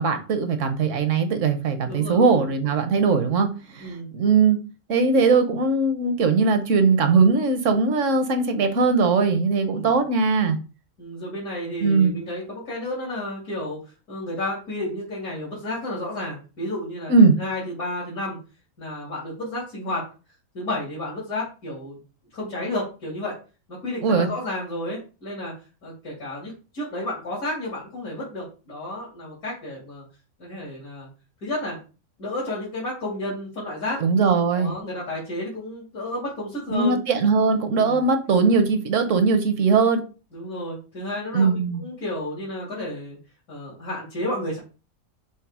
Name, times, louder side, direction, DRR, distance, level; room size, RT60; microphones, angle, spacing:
voice 1, 0.0-4.6 4.9-10.6 11.8-12.2 17.1-17.4 24.0-24.3 34.0-34.7 36.7-40.0 41.3-41.8, right 4 dB, 65° right, 8 dB, 1.2 m, -20 dB
voice 2, 1.8-2.5 3.8-4.1 9.7-9.9 11.0-13.8 14.1-18.4 18.8-20.1 20.5-22.0 22.3-23.4 23.7-25.5 25.8-30.0 30.4-31.1 31.4-31.8 32.2-34.0 34.5-37.0 37.7-38.0 39.1-39.3 40.3-43.2 43.5-44.6, left 1 dB, 85° left, -7 dB, 3.2 m, -31 dB
6.4 x 3.2 x 4.6 m, 0.34 s
omnidirectional pair, 1.5 m